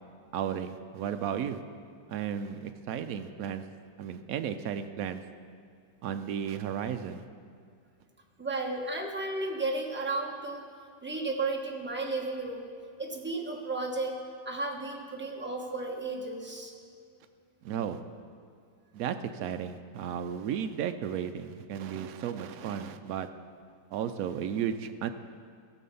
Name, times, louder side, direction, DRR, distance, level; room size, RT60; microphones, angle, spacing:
voice 1, 0.3-1.6 2.1-3.6 4.0-5.2 6.0-7.2 17.6-18.0 18.9-23.3 23.9-25.1, right 8 dB, 80° right, 8 dB, 0.7 m, -34 dB
voice 2, 8.4-10.7 11.0-12.7 13.0-14.2 14.4-16.7, right 2 dB, 10° right, 0 dB, 0.7 m, -33 dB
16.5 x 7.2 x 5.5 m, 2.3 s
omnidirectional pair, 2.1 m